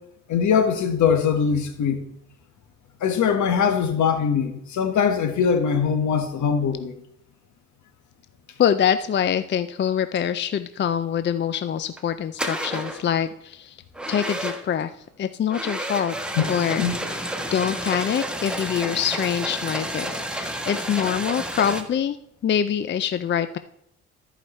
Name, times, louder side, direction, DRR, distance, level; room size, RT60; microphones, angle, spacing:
voice 1, 0.3-2.0 3.0-6.9 16.4-16.5 16.8-17.0, left 7 dB, 70° left, 1.5 m, -21 dB
voice 2, 8.6-13.8 14.1-14.9 15.2-16.1 16.5-16.8 17.1-17.2 17.5-22.2 22.4-23.6, left 9 dB, 40° left, 0.5 m, -24 dB
sound 1, 11.8-12.0 12.4-13.1 13.9-14.8 15.5-21.8, right 1 dB, 5° right, 1.2 m, -30 dB
13.5 x 5.0 x 4.3 m
cardioid pair, 90°, 30 cm